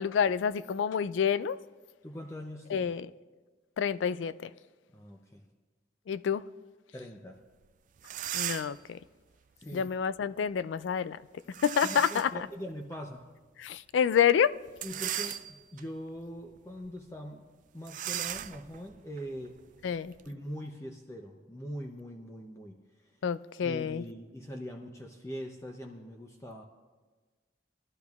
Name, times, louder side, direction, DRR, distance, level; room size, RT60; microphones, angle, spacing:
voice 1, 0.0-1.6 2.7-3.1 3.8-4.5 6.1-6.4 8.3-9.0 9.7-11.2 11.6-12.3 13.6-14.6 19.8-20.1 23.2-24.0, left 7 dB, 85° left, 0.3 m, -28 dB
voice 2, 2.0-2.9 4.9-5.5 6.9-7.4 9.6-9.9 11.8-13.2 14.8-19.6 20.2-23.2 23.6-26.6, equal, 15° left, 0.6 m, -42 dB
sound 1, 7.6-7.7 8.0-8.9 11.5-12.4 12.9-13.0 14.7-15.8 16.4-16.6 16.8-17.0 17.8-20.3, right 11 dB, 45° right, 0.3 m, -37 dB
20.5 x 12.0 x 2.4 m
head